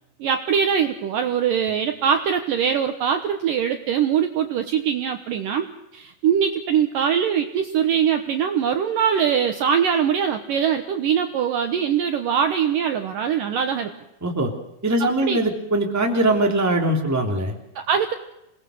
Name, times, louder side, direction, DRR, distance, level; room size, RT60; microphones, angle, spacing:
voice 1, 0.2-5.7 5.9-13.9 15.2-15.4 17.8-18.1, right 8 dB, 65° right, 6 dB, 2.3 m, -22 dB
voice 2, 14.8-17.6, right 1 dB, 5° right, 2 dB, 2.2 m, -21 dB
27.5 x 19.5 x 6.5 m, 0.86 s
omnidirectional pair, 5.0 m